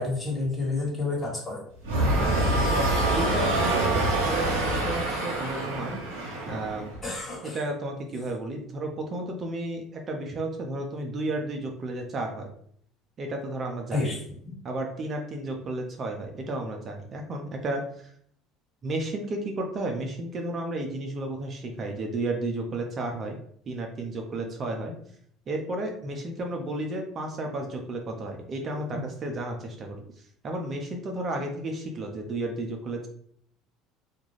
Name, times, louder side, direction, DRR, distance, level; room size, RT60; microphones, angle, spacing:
voice 1, 0.0-1.6 7.0-7.6 13.9-14.2 28.9-29.0, left 3 dB, 25° left, -3 dB, 1.3 m, -29 dB
sound 1, 1.8-7.0, right 1 dB, 90° right, 0.7 m, -25 dB
voice 2, 2.7-6.9 7.4-12.5 13.2-14.1 14.6-18.1 18.8-23.4 23.7-25.0 25.5-30.0 30.4-33.1, right 2 dB, 40° right, 2 dB, 0.5 m, -33 dB
2.4 x 2.2 x 3.0 m, 0.64 s
hypercardioid pair, 75°, 0 cm